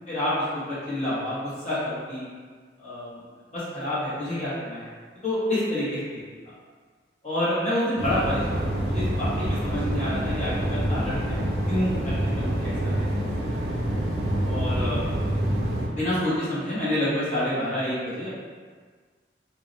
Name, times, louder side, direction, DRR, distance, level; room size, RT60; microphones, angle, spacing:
voice 1, 0.1-2.3 2.8-3.1 3.5-4.9 5.2-6.2 7.2-11.4 11.7-13.6 14.4-15.1 15.9-18.3, left 1 dB, 40° left, -11 dB, 1.0 m, -28 dB
sound 1, 8.0-15.9, right 1 dB, 60° right, 0.4 m, -26 dB
2.6 x 2.1 x 2.5 m, 1.5 s
head